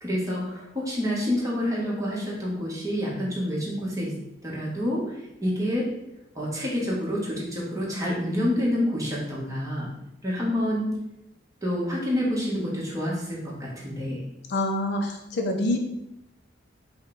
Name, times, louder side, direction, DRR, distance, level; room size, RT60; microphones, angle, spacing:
voice 1, 0.0-4.1 4.4-5.0 5.4-5.9 6.3-9.9 10.2-10.9 11.6-14.2, left 1 dB, 20° right, -5 dB, 1.2 m, -28 dB
voice 2, 14.5-15.8, left 1 dB, 60° left, 3 dB, 0.5 m, -26 dB
5.3 x 2.2 x 3.9 m, 0.87 s
head